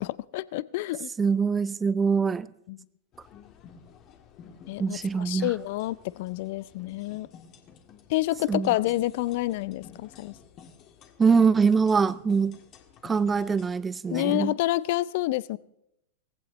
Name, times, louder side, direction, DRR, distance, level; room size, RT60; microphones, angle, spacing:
voice 1, 0.0-1.1 2.7-2.8 4.7-7.3 8.1-10.3 14.1-15.6, left 17 dB, 55° left, 0.5 m, -28 dB
voice 2, 1.2-2.5 4.8-5.5 8.5-8.7 11.2-12.6 13.0-14.5, right 5 dB, 15° right, 0.5 m, -23 dB
sound 1, 3.1-13.7, left 7 dB, 35° left, 1.7 m, -51 dB
18.0 x 15.5 x 3.1 m
figure-of-eight pair, 95°, 0 cm